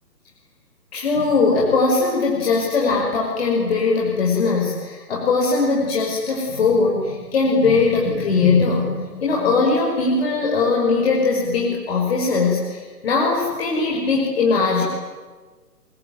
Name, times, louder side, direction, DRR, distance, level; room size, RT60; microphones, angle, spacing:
voice 1, 0.9-14.8, left 4 dB, 40° left, -3 dB, 6.0 m, -20 dB
29.5 x 21.5 x 9.3 m, 1.4 s
hypercardioid pair, 165°, 48 cm